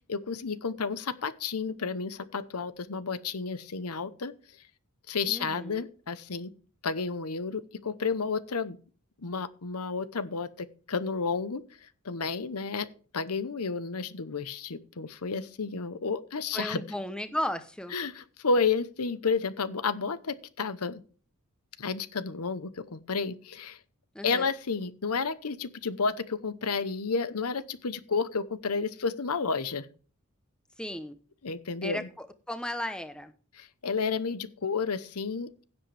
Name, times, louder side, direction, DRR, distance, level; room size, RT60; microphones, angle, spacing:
voice 1, 0.0-4.3 5.1-6.5 6.8-8.8 9.2-11.6 12.0-16.8 17.9-21.0 21.8-23.8 24.2-29.9 31.4-32.1 33.5-35.7, left 4 dB, 80° left, 14 dB, 0.9 m, -31 dB
voice 2, 5.3-5.9 16.5-17.9 24.1-24.5 30.8-31.2 31.8-33.3, left 1 dB, 5° left, 10 dB, 0.9 m, -35 dB
16.0 x 7.7 x 3.4 m, 0.39 s
head